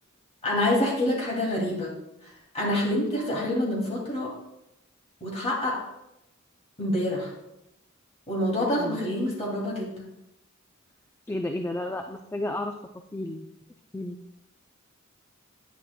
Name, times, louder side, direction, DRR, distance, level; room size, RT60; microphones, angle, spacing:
voice 1, 0.4-1.9 2.2-4.3 5.2-5.8 6.8-7.3 8.3-10.1, left 1 dB, 30° left, -4 dB, 2.5 m, -27 dB
voice 2, 11.3-12.7 13.1-13.5 13.9-14.2, left 1 dB, 10° left, 5 dB, 0.3 m, -32 dB
9.8 x 9.1 x 2.2 m, 0.87 s
head